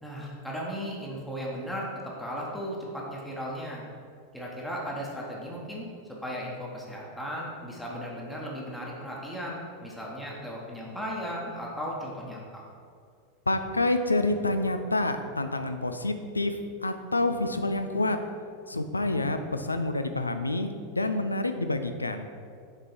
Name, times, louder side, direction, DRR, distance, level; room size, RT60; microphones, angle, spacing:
voice 1, 0.0-3.8 4.3-5.9 6.2-12.6, equal, 5° left, -4 dB, 1.2 m, -36 dB
voice 2, 13.5-16.6 16.8-18.2 18.7-22.3, left 2 dB, 85° left, 8 dB, 0.4 m, -28 dB
6.6 x 3.7 x 4.5 m, 2.2 s
figure-of-eight pair, 85°, 0 cm